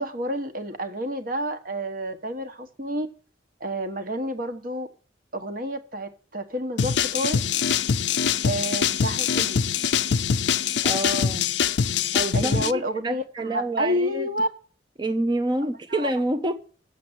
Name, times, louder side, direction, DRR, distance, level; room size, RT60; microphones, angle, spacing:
voice 1, 0.0-3.1 3.6-4.9 5.3-7.4 8.4-9.6 12.3-14.6 15.9-16.1, equal, 50° right, 1.3 m, -29 dB
sound 1, 6.8-12.7, left 7 dB, 65° left, 0.5 m, -23 dB
voice 2, 10.8-11.5 12.1-14.3 15.0-16.5, right 1 dB, 25° right, 0.6 m, -27 dB
7.6 x 6.9 x 7.8 m
head